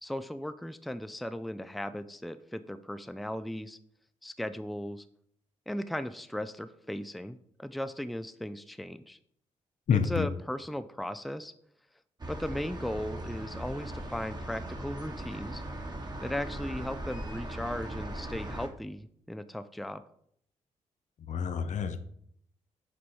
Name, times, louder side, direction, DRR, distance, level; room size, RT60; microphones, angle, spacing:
voice 1, 0.0-3.8 4.2-5.0 5.7-9.2 9.9-11.5 12.3-15.6 16.2-20.0, left 1 dB, ahead, 12 dB, 0.4 m, -37 dB
voice 2, 9.9-10.3 21.3-22.0, left 7 dB, 65° left, 10 dB, 0.7 m, -28 dB
sound 1, 12.2-18.7, right 1 dB, 30° right, 1.3 m, -39 dB
6.2 x 4.0 x 4.5 m, 0.66 s
cardioid pair, 60°, 14 cm